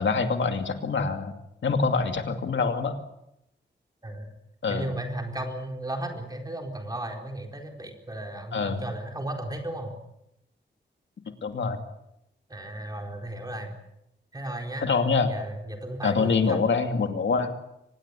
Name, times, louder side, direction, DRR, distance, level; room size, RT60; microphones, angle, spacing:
voice 1, 0.0-1.3 1.6-3.0 4.6-4.9 8.5-8.8 11.4-11.8 14.8-15.3 16.0-17.5, left 4 dB, 75° left, 6 dB, 2.5 m, -25 dB
voice 2, 4.7-10.0 12.5-13.7 14.3-15.0 15.3-16.6, right 1 dB, 20° right, 3 dB, 4.3 m, -35 dB
25.0 x 20.5 x 8.4 m, 0.83 s
wide cardioid pair, 165°, 19 cm